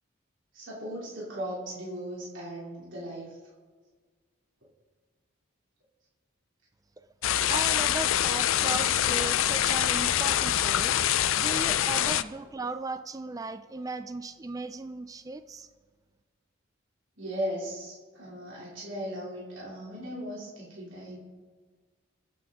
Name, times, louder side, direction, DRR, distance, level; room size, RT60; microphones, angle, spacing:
voice 1, 0.5-3.4 17.2-21.2, equal, 70° right, -6 dB, 3.0 m, -37 dB
sound 1, 7.2-12.2, left 11 dB, 80° left, 0.4 m, -25 dB
voice 2, 7.5-11.0 11.4-15.7, right 3 dB, 15° right, 10 dB, 0.3 m, -37 dB
22.5 x 8.4 x 3.7 m, 1.5 s
head